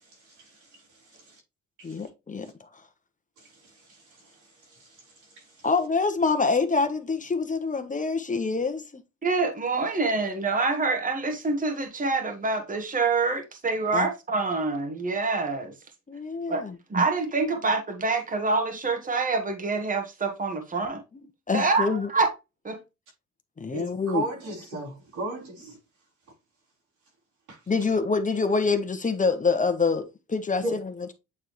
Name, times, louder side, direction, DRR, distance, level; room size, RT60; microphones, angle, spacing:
voice 1, 0.0-1.4 1.8-2.0 2.4-2.5 3.4-5.7 23.7-25.8 27.5-27.6 30.6-30.7, right 2 dB, 85° right, 4.2 m, -37 dB
voice 2, 1.8-2.8 5.6-9.0 13.9-14.1 16.1-16.8 17.4-17.5 21.1-22.1 23.6-24.3 27.7-31.1, left 4 dB, 25° left, 1.1 m, -26 dB
voice 3, 9.2-15.7 16.5-16.6 16.9-21.0 21.5-22.3 22.6-22.8, right 3 dB, 25° right, 1.5 m, -26 dB
8.5 x 3.6 x 3.1 m
cardioid pair, 90°, 30 cm